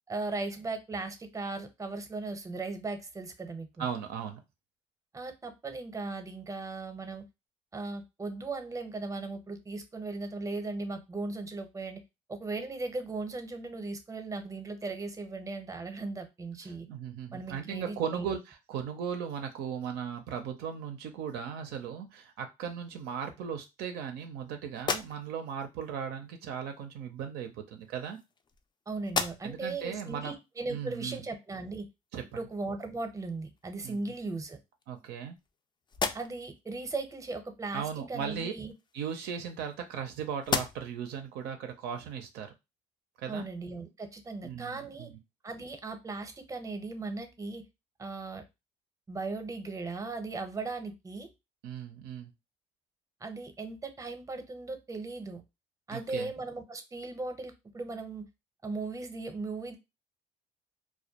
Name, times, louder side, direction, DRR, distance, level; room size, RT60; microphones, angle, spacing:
voice 1, 0.1-3.9 5.1-7.2 7.7-12.0 12.3-16.9 17.3-18.4 28.9-31.9 32.3-34.6 36.1-38.7 43.3-45.1 45.4-47.6 48.0-48.4 49.1-51.3 53.2-55.4 55.9-58.2 58.6-59.8, right 3 dB, 20° right, 7 dB, 0.6 m, -37 dB
voice 2, 3.8-4.4 16.6-28.2 29.4-30.3 30.7-31.2 32.1-32.4 33.8-34.0 34.9-35.4 37.7-38.5 38.9-42.5 43.2-43.4 44.4-45.2 51.6-52.3 55.9-56.3, right 7 dB, 75° right, 5 dB, 0.4 m, -37 dB
sound 1, 24.7-25.6 26.7-26.9 27.8-28.7 29.0-29.7 30.2-30.3 33.0-33.1 33.6-34.2 34.8-35.5 35.9-36.6 38.6-40.0 40.4-41.1, left 5 dB, 30° left, 0.4 m, -36 dB
2.2 x 2.1 x 2.7 m, 0.24 s
supercardioid pair, 70°, 17 cm